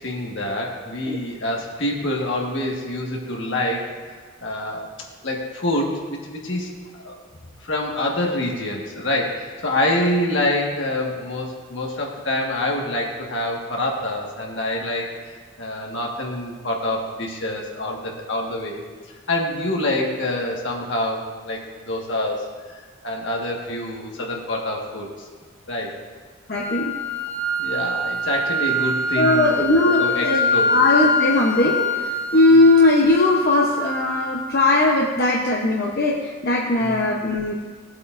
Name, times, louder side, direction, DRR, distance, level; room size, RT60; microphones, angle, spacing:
voice 1, 0.0-3.9 4.4-6.7 7.0-7.1 7.6-15.1 15.6-18.8 19.3-25.3 25.7-26.0 27.6-29.6 29.9-30.8 32.5-32.7 36.8-37.0, left 1 dB, 65° left, -1 dB, 1.6 m, -26 dB
voice 2, 26.5-26.9 29.2-37.6, left 2 dB, 50° left, -2 dB, 0.9 m, -19 dB
sound 1, 26.5-34.5, left 1 dB, 5° left, 1.1 m, -24 dB
17.0 x 8.3 x 2.6 m, 1.5 s
head